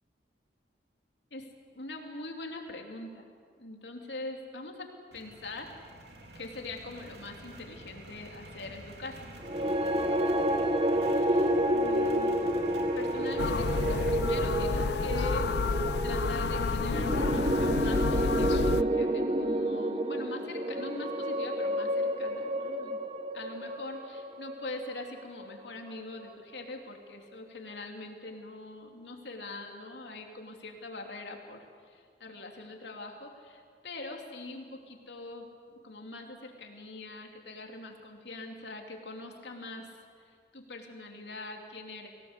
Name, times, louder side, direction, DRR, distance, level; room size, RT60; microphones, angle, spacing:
voice 1, 1.3-3.2 3.6-5.7 6.3-9.3 11.1-12.4 12.9-15.7 16.0-23.0 23.3-42.1, left 2 dB, 85° left, 2 dB, 3.0 m, -43 dB
sound 1, 5.1-14.1, right 1 dB, 75° right, 2.9 m, -47 dB
sound 2, 9.4-25.7, right 1 dB, 35° right, 1.0 m, -29 dB
sound 3, 13.4-18.8, left 4 dB, 70° left, 0.5 m, -30 dB
23.5 x 17.5 x 8.2 m, 2.1 s
head